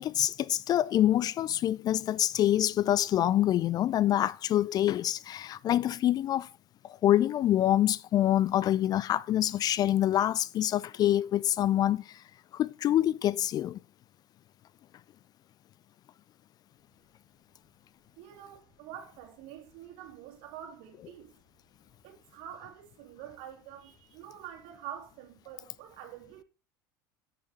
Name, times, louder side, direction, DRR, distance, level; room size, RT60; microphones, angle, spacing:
voice 1, 0.0-6.5 7.0-12.2 12.5-13.8, left 12 dB, 35° left, 0.3 m, -26 dB
voice 2, 18.2-21.4 22.0-26.4, right 10 dB, 60° right, 3.0 m, -46 dB
13.5 x 6.8 x 3.0 m
figure-of-eight pair, 70°, 11 cm